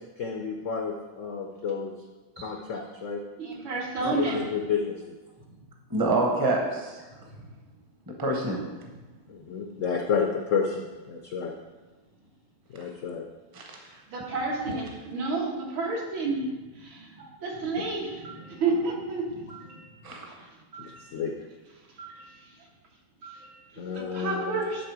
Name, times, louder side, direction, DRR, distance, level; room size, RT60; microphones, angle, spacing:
voice 1, 0.0-1.9 2.4-3.2 4.2-5.2 9.3-11.5 12.7-13.2 17.8-17.9 20.8-21.3 23.8-24.6, left 6 dB, 85° left, 2 dB, 0.6 m, -31 dB
voice 2, 3.4-4.6 5.5-5.6 7.3-7.5 8.8-8.9 13.9-16.5 16.7-21.2 22.0-22.7 23.2-24.8, right 3 dB, 80° right, -2 dB, 2.2 m, -32 dB
voice 3, 5.9-7.0 8.1-8.6 13.5-13.8 20.0-20.3, right 2 dB, 20° right, 1 dB, 0.5 m, -27 dB
10.5 x 3.7 x 4.8 m, 1.2 s
omnidirectional pair, 2.1 m